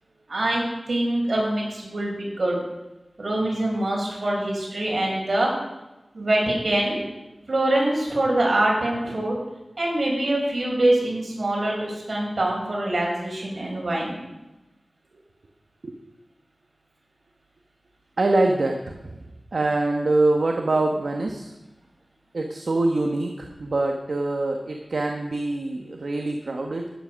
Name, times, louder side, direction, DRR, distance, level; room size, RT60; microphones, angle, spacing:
voice 1, 0.3-2.6 3.2-5.5 6.2-7.0 7.5-9.4 9.8-14.2, right 1 dB, 65° right, -2 dB, 5.5 m, -24 dB
voice 2, 18.2-19.2 19.5-21.5 22.3-26.9, right 2 dB, 80° right, 3 dB, 1.2 m, -24 dB
12.5 x 10.5 x 6.3 m, 1.0 s
wide cardioid pair, 50°, 0 cm